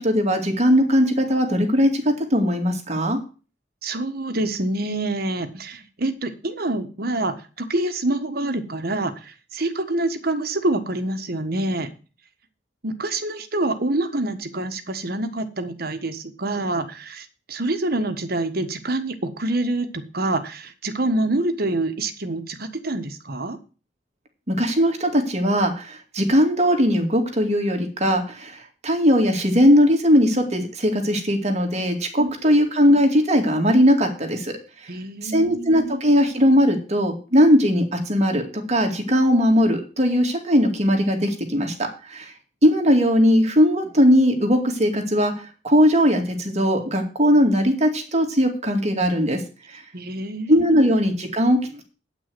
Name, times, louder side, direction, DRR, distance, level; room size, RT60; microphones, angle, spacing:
voice 1, 0.0-3.2 24.5-34.6 35.2-42.3 42.6-45.3 45.6-49.4 49.7-49.8 50.5-51.8, equal, 40° right, 4 dB, 2.3 m, -19 dB
voice 2, 3.8-11.9 12.8-23.6 32.2-32.3 34.9-36.0 49.9-50.8, right 2 dB, 55° right, 8 dB, 1.5 m, -26 dB
9.3 x 6.0 x 7.7 m, 0.36 s
head